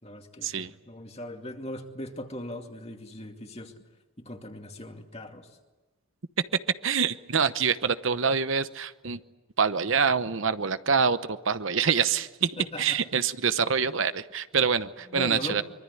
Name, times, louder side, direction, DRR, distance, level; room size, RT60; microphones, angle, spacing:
voice 1, 0.0-3.7 4.3-5.5 12.6-13.0 15.1-15.6, left 1 dB, 30° left, 4 dB, 2.4 m, -39 dB
voice 2, 6.8-9.2 9.6-15.6, right 6 dB, 65° right, 12 dB, 0.9 m, -26 dB
24.5 x 24.0 x 9.9 m, 1.2 s
head